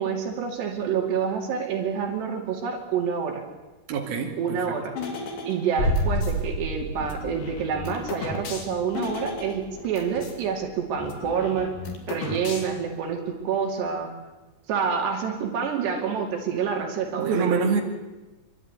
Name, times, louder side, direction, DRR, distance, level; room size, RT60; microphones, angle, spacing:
voice 1, 0.0-3.4 4.4-4.9 5.5-11.7 12.1-14.1 14.7-17.5, right 6 dB, 80° right, 2 dB, 4.7 m, -27 dB
voice 2, 3.9-4.9 17.2-17.8, right 5 dB, 65° right, 0 dB, 4.1 m, -26 dB
sound 1, 5.0-6.4 7.0-10.4 10.7-10.8 11.0-13.0, left 3 dB, 60° left, 4.1 m, -36 dB
sound 2, 5.8-11.5 11.8-11.9, equal, 25° left, 4.1 m, -31 dB
26.5 x 12.5 x 9.7 m, 1.1 s
omnidirectional pair, 4.8 m